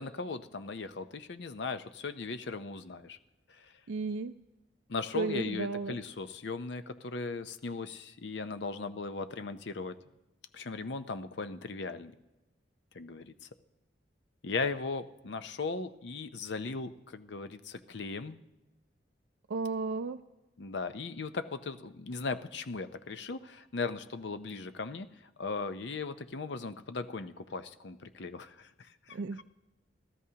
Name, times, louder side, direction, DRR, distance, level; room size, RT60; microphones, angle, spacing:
voice 1, 0.0-3.2 3.5-3.7 4.9-10.0 10.5-12.1 12.9-13.3 14.4-18.4 20.6-25.1 25.4-29.2, left 4 dB, 70° left, 11 dB, 0.6 m, -38 dB
voice 2, 3.9-4.3 5.1-6.0 19.5-20.2 29.1-29.4, right 4 dB, 80° right, 6 dB, 0.4 m, -33 dB
29.5 x 12.5 x 2.9 m, 1.0 s
head